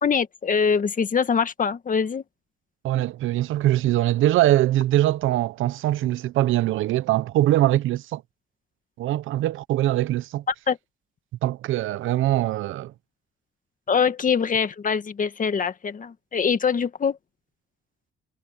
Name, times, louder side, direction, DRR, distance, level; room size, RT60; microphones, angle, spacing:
voice 1, 0.0-2.2 10.5-10.8 13.9-17.2, left 6 dB, 40° left, 1.9 m, -23 dB
voice 2, 2.8-8.2 9.0-10.4 11.4-12.9, right 14 dB, 85° right, 0.8 m, -22 dB
cardioid pair, 90°, 20 cm